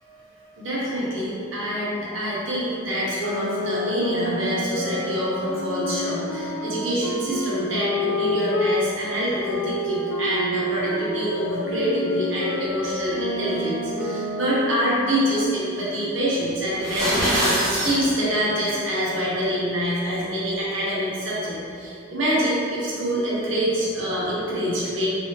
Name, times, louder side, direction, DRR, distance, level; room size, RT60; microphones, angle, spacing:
voice 1, 0.4-25.1, equal, 70° right, -8 dB, 1.0 m, -25 dB
sound 1, 3.2-8.7 9.4-14.9, left 1 dB, 65° left, 0.4 m, -29 dB
sound 2, 16.7-18.0, right 1 dB, 15° right, 1.0 m, -23 dB
3.1 x 2.9 x 3.2 m, 2.6 s
head